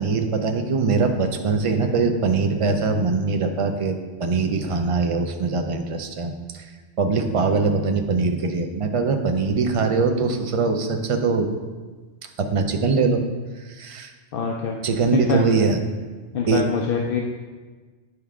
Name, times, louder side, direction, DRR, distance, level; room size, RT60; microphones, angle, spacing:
voice 1, 0.0-3.9 4.2-6.7 7.0-11.5 12.4-13.2 13.5-14.1 14.8-15.8 16.5-16.6, right 4 dB, 45° right, 5 dB, 0.4 m, -22 dB
voice 2, 14.3-14.8 15.1-15.4 16.3-17.2, left 6 dB, 60° left, 1 dB, 0.7 m, -24 dB
9.6 x 4.6 x 3.6 m, 1.4 s
omnidirectional pair, 1.3 m